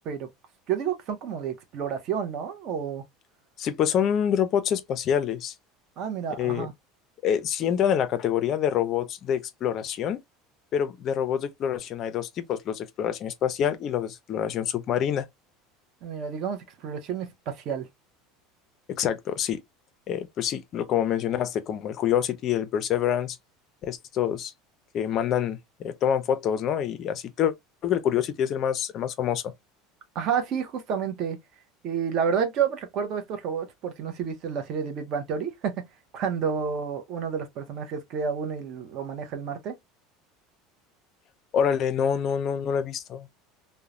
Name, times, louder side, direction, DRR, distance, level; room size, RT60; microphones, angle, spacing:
voice 1, 0.7-3.0 6.0-6.7 16.0-17.9 30.1-31.4 31.8-35.9 36.1-39.7, right 7 dB, 40° right, 0.6 m, -30 dB
voice 2, 3.6-5.5 6.4-6.7 7.2-10.2 10.7-15.3 19.0-19.6 20.1-23.4 23.8-24.5 24.9-27.5 27.8-29.5 41.5-43.3, left 9 dB, 35° left, 0.4 m, -26 dB
2.9 x 2.0 x 2.4 m
cardioid pair, 170°, 0 cm